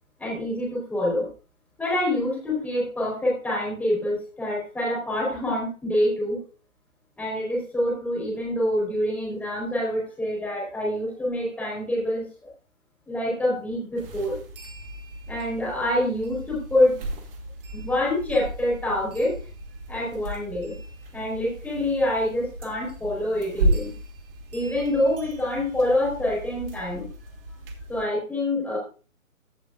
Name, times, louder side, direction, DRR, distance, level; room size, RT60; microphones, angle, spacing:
voice 1, 0.2-1.3 1.8-6.4 7.2-12.3 13.1-14.4 15.3-17.0 17.7-19.3 19.9-20.7 21.1-23.9 24.5-27.1 27.9-28.8, left 1 dB, 5° left, -3 dB, 4.0 m, -26 dB
sound 1, 13.9-28.0, right 1 dB, 40° right, 2.3 m, -34 dB
15.5 x 7.7 x 2.5 m, 0.37 s
figure-of-eight pair, 140°, 43 cm